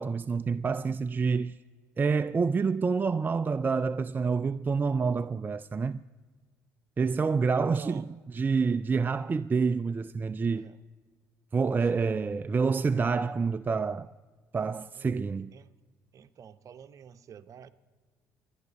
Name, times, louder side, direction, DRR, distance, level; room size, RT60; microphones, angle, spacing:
voice 1, 0.0-1.6 2.0-6.0 7.0-8.0 8.3-10.7 11.5-14.1 14.5-15.5, right 5 dB, 25° right, 0.4 m, -27 dB
voice 2, 7.5-8.1 10.5-10.8 14.9-15.1 15.5-15.7 16.1-17.7, right 8 dB, 50° right, 0.9 m, -49 dB
28.5 x 10.5 x 4.1 m
hypercardioid pair, 60°, 7 cm